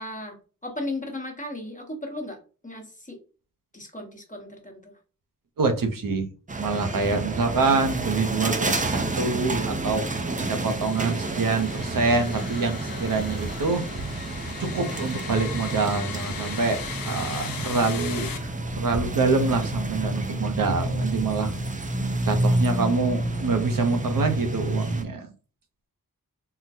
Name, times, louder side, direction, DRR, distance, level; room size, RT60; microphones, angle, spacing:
voice 1, 0.0-2.4 2.6-3.2 3.7-4.9, left 1 dB, 20° left, 2 dB, 1.0 m, -36 dB
voice 2, 5.6-6.3 6.6-10.0 10.4-13.8 14.6-21.5 22.2-25.3, right 4 dB, 65° right, 6 dB, 0.7 m, -26 dB
sound 1, 6.5-25.0, right 2 dB, 20° right, 0.5 m, -29 dB
sound 2, 10.4-18.4, left 7 dB, 70° left, 0.6 m, -38 dB
3.7 x 2.1 x 2.7 m, 0.36 s
wide cardioid pair, 85°, 36 cm